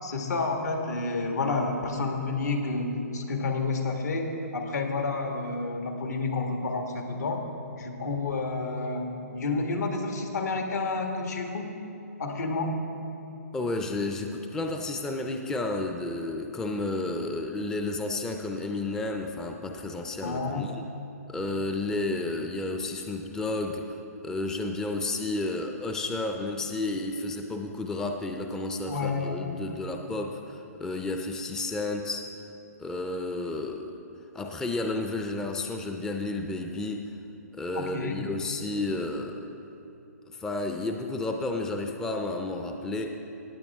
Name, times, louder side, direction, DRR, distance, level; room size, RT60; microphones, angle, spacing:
voice 1, 0.0-7.4 7.7-11.7 12.2-12.8 20.2-20.7 28.9-29.4 37.7-38.2, left 3 dB, 75° left, 3 dB, 1.7 m, -30 dB
voice 2, 13.5-20.9 21.3-32.3 32.8-34.0 34.3-37.1 37.5-39.5 40.3-43.2, left 2 dB, 5° left, 4 dB, 0.4 m, -32 dB
17.5 x 8.7 x 3.5 m, 3.0 s
hypercardioid pair, 145°, 9 cm